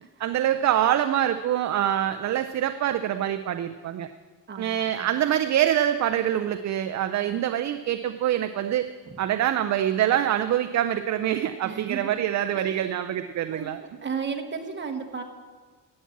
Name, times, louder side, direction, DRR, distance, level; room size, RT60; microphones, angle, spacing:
voice 1, 0.2-4.1 4.6-8.9 9.2-13.8, right 11 dB, 45° right, 9 dB, 0.4 m, -25 dB
voice 2, 4.5-5.1 9.0-9.2 11.6-12.2 12.5-12.8 13.5-13.7 14.0-15.2, right 5 dB, 25° right, 4 dB, 1.2 m, -34 dB
12.0 x 8.5 x 7.2 m, 1.5 s
cardioid pair, 160°, 41 cm